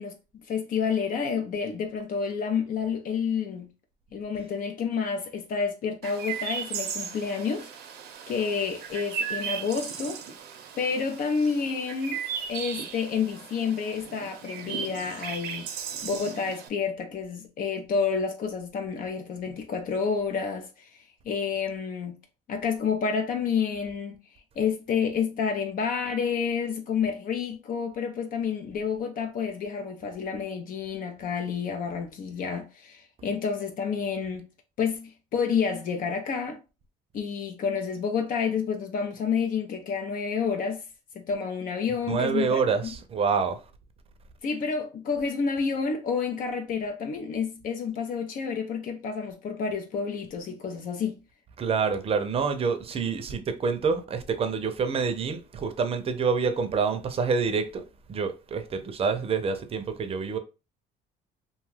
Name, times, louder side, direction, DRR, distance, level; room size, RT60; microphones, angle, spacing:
voice 1, 0.0-3.7 4.1-7.7 8.3-10.2 10.8-12.2 12.5-15.7 16.0-21.0 21.2-22.2 22.5-24.2 24.6-34.5 34.8-36.6 37.1-40.9 41.1-42.9 44.4-51.2, left 6 dB, 55° left, 0.6 m, -29 dB
Chirp tweet, 6.0-16.7, right 7 dB, 75° right, 0.6 m, -36 dB
voice 2, 42.1-43.6 51.6-57.8 58.1-60.4, right 5 dB, 35° right, 0.5 m, -27 dB
2.6 x 2.3 x 3.2 m
cardioid pair, 110°, 17 cm